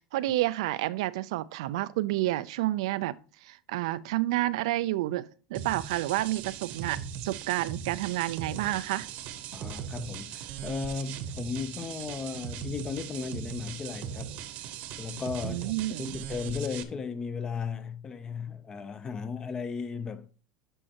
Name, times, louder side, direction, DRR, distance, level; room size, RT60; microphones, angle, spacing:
voice 1, 0.1-9.1 15.4-16.1, right 16 dB, 85° right, 0.4 m, -30 dB
sound 1, 5.5-16.8, right 9 dB, 55° right, 0.9 m, -39 dB
voice 2, 9.5-14.3 15.0-15.7 16.0-20.3, left 5 dB, 25° left, 0.6 m, -35 dB
11.0 x 5.4 x 2.9 m
supercardioid pair, 135°, 3 cm